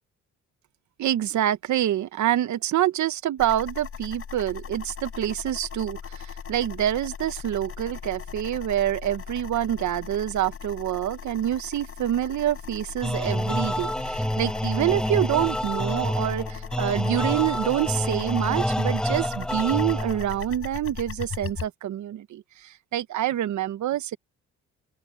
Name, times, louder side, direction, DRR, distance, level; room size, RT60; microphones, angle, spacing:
voice 1, 1.0-6.2 6.5-22.4 22.9-24.2, right 12 dB, 70° right, 1.2 m, -26 dB
sound 1, 3.4-21.7, left 7 dB, 50° left, 5.6 m, -38 dB
sound 2, 13.0-20.4, equal, ahead, 7.2 m, -27 dB
open air
cardioid pair, 90°, 30 cm